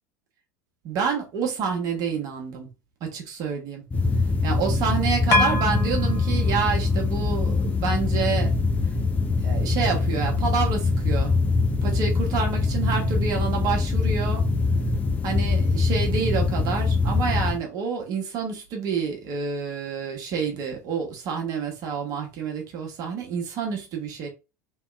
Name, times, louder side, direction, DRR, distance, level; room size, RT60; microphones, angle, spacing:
voice 1, 0.8-2.7 3.0-3.8 4.4-8.5 9.4-11.3 11.8-14.4 15.2-24.3, right 6 dB, 45° right, 1.1 m, -28 dB
sound 1, 3.9-17.6, left 3 dB, 15° left, 0.5 m, -23 dB
sound 2, 5.3-9.8, left 2 dB, 45° left, 1.0 m, -29 dB
3.0 x 2.8 x 2.3 m
figure-of-eight pair, 75°, 9 cm